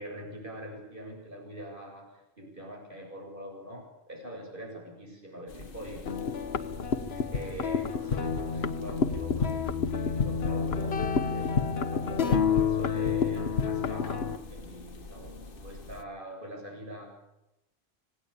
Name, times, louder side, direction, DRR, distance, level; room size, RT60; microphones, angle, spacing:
voice 1, 0.0-6.1 7.1-17.1, equal, 55° right, 0 dB, 8.3 m, -43 dB
sound 1, 5.5-16.0, left 2 dB, 60° left, 1.6 m, -46 dB
sound 2, 6.1-14.4, left 6 dB, 80° left, 1.4 m, -29 dB
26.0 x 19.0 x 8.8 m, 0.92 s
omnidirectional pair, 1.0 m